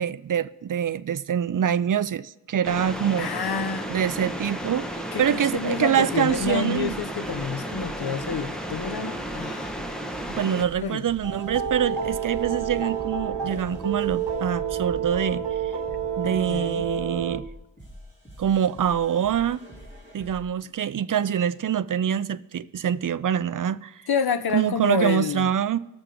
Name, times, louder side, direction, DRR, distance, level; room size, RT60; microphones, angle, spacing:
voice 1, 0.0-3.3 3.9-7.0 10.4-15.4 16.2-17.5 18.4-19.6 20.1-23.9 24.5-25.8, right 9 dB, 50° right, 0.4 m, -25 dB
sound 1, 2.6-10.6, right 1 dB, ahead, 1.0 m, -33 dB
voice 2, 3.2-3.9 5.1-9.8 10.8-11.0 16.2-16.9 24.1-25.5, left 6 dB, 60° left, 0.7 m, -29 dB
sound 2, 4.1-5.1 5.8-20.5 21.1-21.5, equal, 25° left, 3.6 m, -46 dB
sound 3, 11.2-17.4, right 7 dB, 65° right, 1.3 m, -29 dB
20.0 x 7.0 x 3.7 m
wide cardioid pair, 75°, 44 cm